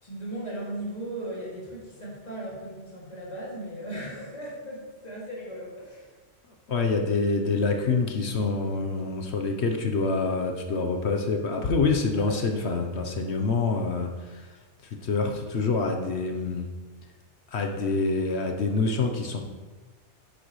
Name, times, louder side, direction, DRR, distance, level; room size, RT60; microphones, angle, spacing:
voice 1, 0.0-6.1 12.2-12.4, right 1 dB, 35° left, -5 dB, 2.6 m, -37 dB
voice 2, 6.7-16.7 17.5-19.4, left 3 dB, 70° left, 3 dB, 1.1 m, -26 dB
10.5 x 10.0 x 3.1 m, 1.3 s
omnidirectional pair, 1.2 m